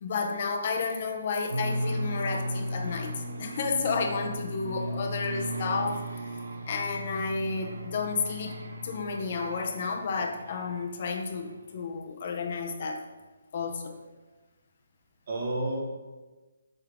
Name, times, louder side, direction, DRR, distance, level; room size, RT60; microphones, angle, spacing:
voice 1, 0.0-6.4 6.7-8.5 8.8-13.0 13.5-13.9, left 4 dB, 35° left, 4 dB, 0.7 m, -31 dB
sound 1, 1.5-11.1, equal, 70° right, 1.0 m, -36 dB
voice 2, 4.6-5.0 15.3-15.8, right 2 dB, 40° right, -1 dB, 1.5 m, -32 dB
7.8 x 3.6 x 4.9 m, 1.2 s
hypercardioid pair, 175°, 0 cm